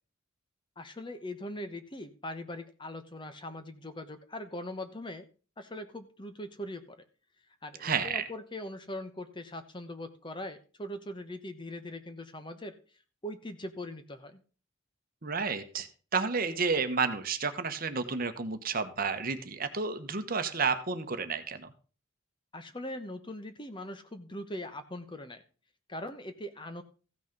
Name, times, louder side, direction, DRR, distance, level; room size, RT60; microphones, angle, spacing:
voice 1, 0.8-5.2 5.6-7.0 7.6-12.8 13.2-14.4 22.5-25.4 25.9-26.8, left 1 dB, 25° left, 9 dB, 1.0 m, -41 dB
voice 2, 7.8-8.2 15.2-21.7, right 5 dB, 45° right, 9 dB, 1.1 m, -31 dB
15.0 x 6.2 x 5.3 m, 0.37 s
head